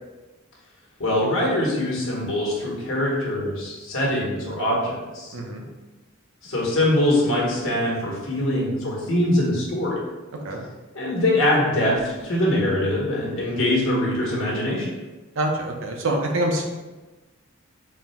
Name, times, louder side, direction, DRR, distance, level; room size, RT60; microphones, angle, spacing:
voice 1, 1.0-5.3 6.4-9.9 10.9-14.9, left 1 dB, 85° left, -4 dB, 1.3 m, -23 dB
voice 2, 15.4-16.7, right 1 dB, 75° right, 2 dB, 0.7 m, -25 dB
4.2 x 2.1 x 4.2 m, 1.2 s
head